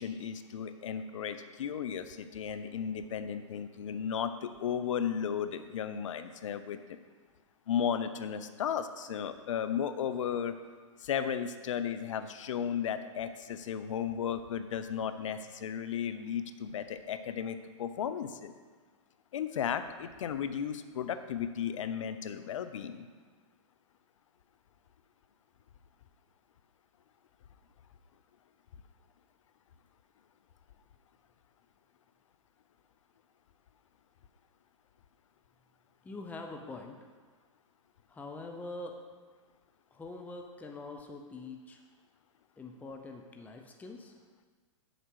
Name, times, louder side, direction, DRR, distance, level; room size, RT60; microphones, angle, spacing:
voice 1, 0.0-7.0 7.7-10.5 11.0-18.5 19.3-23.1, left 8 dB, 70° left, 10 dB, 0.7 m, -35 dB
voice 2, 36.0-37.0 38.1-39.0 39.9-41.8 42.6-44.1, left 2 dB, 10° left, 2 dB, 0.7 m, -44 dB
7.4 x 6.7 x 4.6 m, 1.5 s
hypercardioid pair, 120°, 17 cm